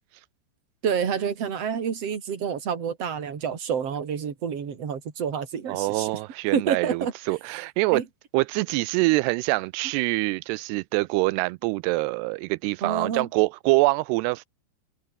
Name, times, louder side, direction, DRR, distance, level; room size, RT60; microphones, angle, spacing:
voice 1, 0.8-6.1 6.5-7.1 7.9-8.0 12.8-13.3, right 7 dB, 35° right, 3.5 m, -28 dB
voice 2, 5.7-8.0 8.3-14.4, right 22 dB, 85° right, 2.3 m, -25 dB
omnidirectional pair, 5.3 m